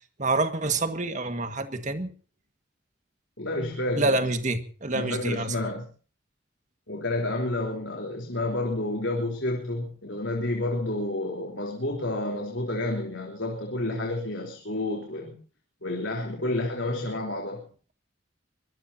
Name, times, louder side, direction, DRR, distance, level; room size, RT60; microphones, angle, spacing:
voice 1, 0.2-2.1 4.0-5.5, right 2 dB, 40° right, 7 dB, 1.9 m, -27 dB
voice 2, 3.4-4.3 4.9-5.9 6.9-15.4 15.8-17.6, left 2 dB, 75° left, 1 dB, 3.7 m, -30 dB
24.0 x 19.5 x 2.9 m, 0.40 s
head